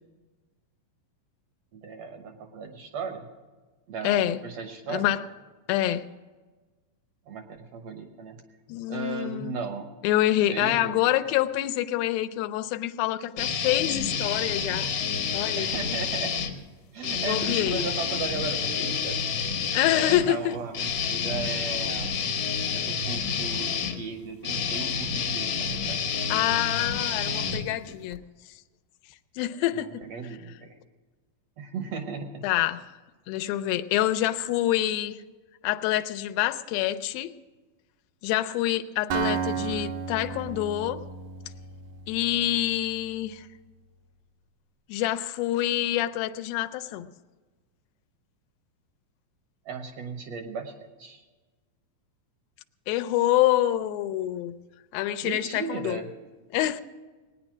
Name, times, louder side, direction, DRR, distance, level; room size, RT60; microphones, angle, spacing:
voice 1, 1.7-3.3 3.9-5.1 7.3-8.4 8.9-9.9 10.5-11.1 15.6-16.4 16.9-19.2 19.9-22.1 22.7-26.0 29.7-30.7 31.6-32.5 49.6-51.3 55.2-56.1, right 5 dB, 70° right, 6 dB, 1.6 m, -36 dB
voice 2, 4.0-4.4 4.9-5.2 5.7-6.1 8.7-9.6 10.0-14.9 15.3-15.7 17.2-17.8 19.7-20.5 26.3-28.2 29.4-29.9 32.4-32.8 33.3-35.2 35.6-37.3 38.2-41.0 42.1-43.5 44.9-47.1 52.9-54.6 54.9-56.0 56.5-56.8, left 14 dB, 85° left, 10 dB, 2.4 m, -26 dB
sound 1, 13.4-16.5 17.0-28.2, left 6 dB, 65° left, 1.7 m, -29 dB
Acoustic guitar, 39.1-43.0, right 6 dB, 90° right, 3.0 m, -33 dB
19.5 x 9.7 x 6.1 m, 1.3 s
omnidirectional pair, 4.1 m